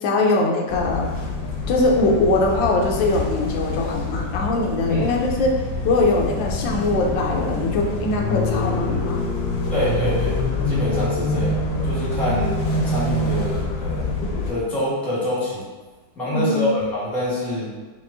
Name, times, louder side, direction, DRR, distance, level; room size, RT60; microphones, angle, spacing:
voice 1, 0.0-1.1 1.7-9.2 16.3-16.7, left 2 dB, 85° left, 0 dB, 1.3 m, -21 dB
sound 1, 0.7-14.5, left 2 dB, 65° left, 1.1 m, -25 dB
voice 2, 9.7-10.4 10.7-12.6 12.8-14.1 14.5-15.7 16.1-17.7, left 1 dB, ahead, -8 dB, 1.0 m, -25 dB
5.2 x 3.0 x 2.6 m, 1.3 s
omnidirectional pair, 2.0 m